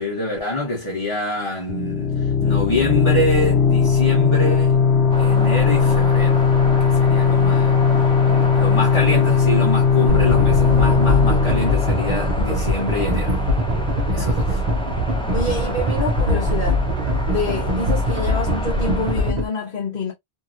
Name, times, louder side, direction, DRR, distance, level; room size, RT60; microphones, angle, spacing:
voice 1, 0.0-4.8 5.2-6.4 6.8-13.4 14.1-14.6, left 1 dB, 30° left, 1.2 m, -26 dB
sound 1, 1.7-13.1, left 6 dB, 85° left, 0.9 m, -18 dB
sound 2, 5.1-19.3, equal, 5° left, 0.5 m, -31 dB
sound 3, 10.1-19.5, equal, 45° right, 0.8 m, -22 dB
voice 2, 15.3-16.8 17.3-20.1, left 3 dB, 55° left, 1.0 m, -26 dB
2.8 x 2.7 x 2.5 m
omnidirectional pair, 1.1 m